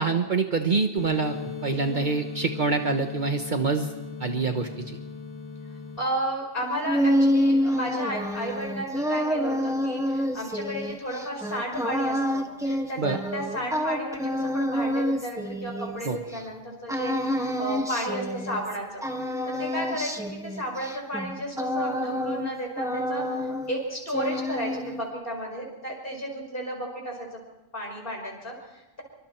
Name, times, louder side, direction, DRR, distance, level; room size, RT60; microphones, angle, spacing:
voice 1, 0.0-3.9 4.2-5.0 13.0-13.2 16.0-16.2, right 4 dB, 50° right, 5 dB, 1.3 m, -26 dB
sound 1, 1.0-6.0, left 5 dB, 40° left, 1.7 m, -37 dB
voice 2, 6.0-19.0 19.5-27.4 27.7-29.0, equal, 60° left, 1 dB, 5.6 m, -33 dB
sound 2, 6.6-16.4 16.9-18.8 19.0-22.5 22.8-23.8 24.1-25.1, equal, 5° right, 1.6 m, -28 dB
26.0 x 24.5 x 4.5 m, 1.0 s
omnidirectional pair, 1.0 m